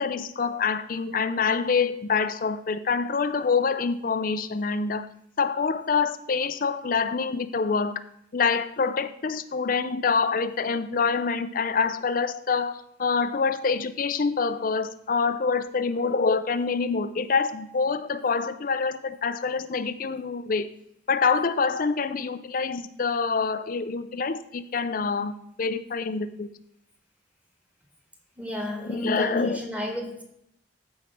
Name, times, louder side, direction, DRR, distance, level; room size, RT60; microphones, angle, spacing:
voice 1, 0.0-5.1 5.4-8.0 8.3-20.7 21.1-26.5 28.8-29.6, left 5 dB, 50° left, 12 dB, 0.5 m, -26 dB
voice 2, 28.4-30.2, equal, 10° right, 1 dB, 1.7 m, -32 dB
14.0 x 5.3 x 3.6 m, 0.75 s
head